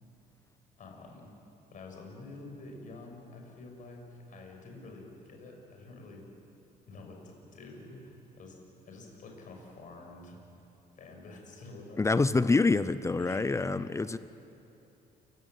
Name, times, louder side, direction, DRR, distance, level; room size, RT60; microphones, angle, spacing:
voice 1, 0.8-1.3 1.7-6.3 6.9-8.6 8.8-10.4 11.0-12.3 13.1-14.1, left 2 dB, 50° left, 1 dB, 6.0 m, -48 dB
voice 2, 12.0-14.2, left 3 dB, 15° left, 14 dB, 0.6 m, -26 dB
28.5 x 16.5 x 9.3 m, 2.9 s
cardioid pair, 110°, 17 cm